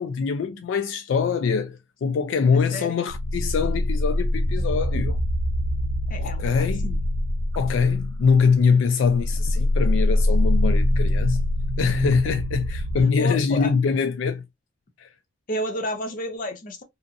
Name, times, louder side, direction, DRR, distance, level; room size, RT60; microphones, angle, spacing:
voice 1, 0.0-5.2 6.2-6.9 7.6-11.5 11.8-14.4 15.0-15.1, left 5 dB, 70° left, 0.3 m, -23 dB
voice 2, 2.5-3.0 6.1-7.0 13.2-13.7 15.5-16.8, equal, 40° left, 0.6 m, -31 dB
sound 1, 3.1-8.6 9.0-13.0, left 1 dB, 80° right, 0.4 m, -24 dB
2.7 x 2.5 x 2.4 m
head